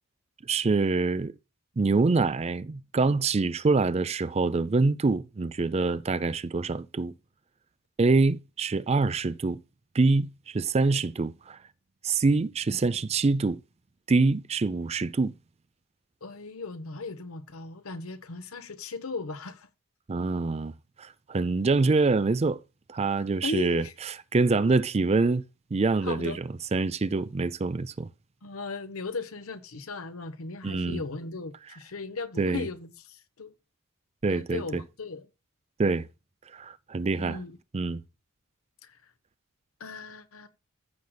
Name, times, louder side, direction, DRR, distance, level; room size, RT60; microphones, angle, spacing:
voice 1, 0.5-1.3 1.8-7.1 8.0-9.6 9.9-11.6 12.0-13.6 14.1-15.3 20.1-20.7 21.0-22.6 22.9-23.8 24.3-25.4 25.7-26.4 26.7-28.1 30.6-31.0 32.4-32.7 34.2-34.8 35.8-36.1 36.5-37.4 37.7-38.0, right 3 dB, 30° right, 0.4 m, -25 dB
voice 2, 16.2-19.7 23.4-23.9 26.0-26.4 28.4-33.5 34.3-35.3 37.1-37.6 38.8-39.0 39.8-40.5, left 4 dB, 85° left, 1.1 m, -37 dB
15.0 x 6.5 x 2.3 m
head